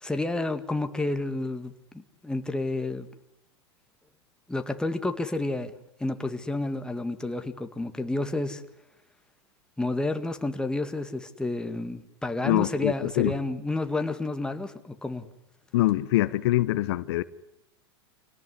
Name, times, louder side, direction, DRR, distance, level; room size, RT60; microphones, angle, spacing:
voice 1, 0.0-3.1 4.5-5.7 6.0-8.6 9.8-15.3, left 2 dB, 5° left, 2.0 m, -30 dB
voice 2, 12.4-13.3 15.7-17.2, left 16 dB, 65° left, 1.0 m, -24 dB
27.0 x 18.0 x 9.7 m
hypercardioid pair, 110°, 14 cm